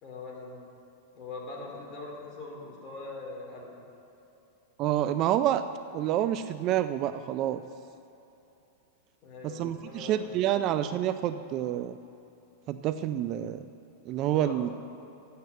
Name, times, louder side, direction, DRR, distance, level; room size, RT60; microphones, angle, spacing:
voice 1, 0.0-0.6 1.1-3.8 9.2-10.6 14.3-14.7, left 3 dB, 30° left, -2 dB, 2.9 m, -42 dB
voice 2, 4.8-5.6 5.9-7.6 9.4-12.0 12.7-13.6 14.1-14.7, right 12 dB, 35° right, 11 dB, 0.3 m, -28 dB
10.5 x 8.3 x 7.8 m, 2.9 s
supercardioid pair, 155°, 0 cm